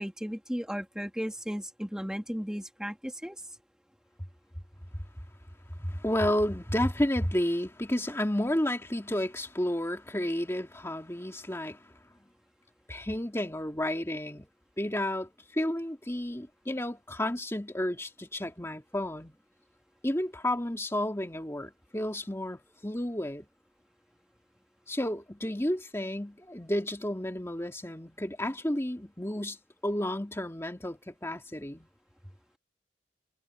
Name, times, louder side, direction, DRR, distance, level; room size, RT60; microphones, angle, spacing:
voice 1, 0.0-3.4, equal, 5° right, 3.0 m, -35 dB
voice 2, 5.8-11.9 12.9-14.5 14.8-19.4 20.0-23.5 24.9-29.6 29.8-31.9, left 1 dB, 15° left, 2.2 m, -31 dB
head